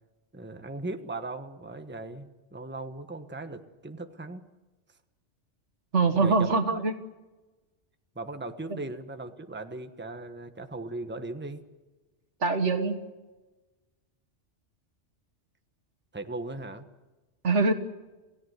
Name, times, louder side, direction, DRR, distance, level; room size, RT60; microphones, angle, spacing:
voice 1, 0.3-4.5 6.1-6.6 8.1-11.6 16.1-16.9, right 2 dB, 10° right, 7 dB, 1.2 m, -38 dB
voice 2, 5.9-6.9 12.4-13.0 17.4-17.7, right 3 dB, 75° right, 8 dB, 2.0 m, -23 dB
28.5 x 17.0 x 8.1 m, 1.2 s
omnidirectional pair, 1.2 m